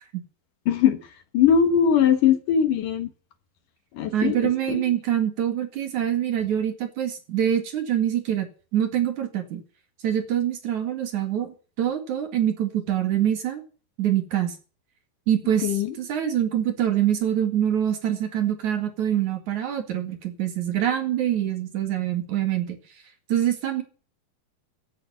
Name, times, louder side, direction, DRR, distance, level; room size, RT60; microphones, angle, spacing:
voice 1, 0.7-1.0 1.3-3.1 3.9-4.4 4.7-4.8 15.6-16.0, left 8 dB, 65° left, 2.7 m, -20 dB
voice 2, 4.1-8.5 8.7-9.6 10.0-13.6 14.0-14.6 15.3-22.8 23.3-23.8, right 10 dB, 55° right, 3.2 m, -25 dB
15.5 x 9.0 x 7.0 m
omnidirectional pair, 4.5 m